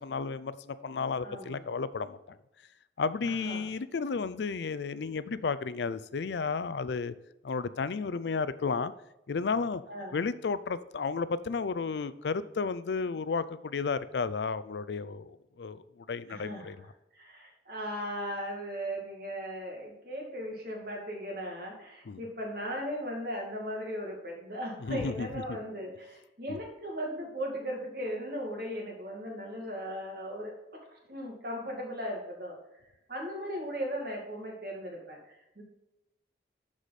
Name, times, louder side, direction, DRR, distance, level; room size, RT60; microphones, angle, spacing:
voice 1, 0.0-2.4 3.0-7.1 7.4-8.9 9.3-9.8 10.1-16.9 22.1-22.2 24.8-25.6 26.5-26.6, left 4 dB, 70° left, 15 dB, 0.5 m, -33 dB
voice 2, 1.2-1.6 3.2-3.6 9.9-10.2 16.3-16.7 17.1-30.6 31.1-32.6 33.1-35.6, equal, 55° right, 0 dB, 2.3 m, -37 dB
11.0 x 5.0 x 4.2 m, 0.90 s
head